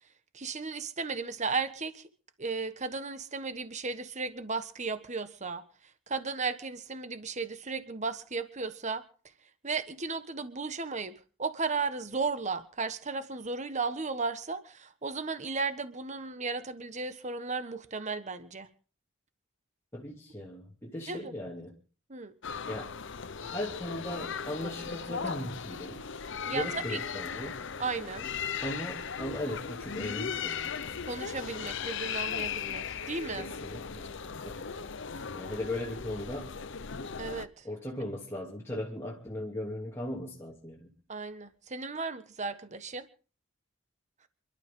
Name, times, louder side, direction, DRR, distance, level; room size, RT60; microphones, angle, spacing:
voice 1, 0.3-2.0 2.4-5.6 6.1-9.0 9.6-11.1 11.4-18.7 21.1-21.3 22.1-22.3 26.4-27.0 27.8-28.3 31.1-33.5 37.2-37.7 41.1-43.1, right 4 dB, 35° right, 1.3 m, -35 dB
voice 2, 19.9-21.7 22.7-22.9 23.4-26.1 26.5-27.6 28.6-30.8 33.4-34.1 34.4-34.6 35.3-36.6 37.6-40.9, left 1 dB, 10° left, 2.8 m, -38 dB
sound 1, 22.4-37.5, left 6 dB, 60° left, 0.8 m, -37 dB
28.0 x 12.5 x 3.8 m
head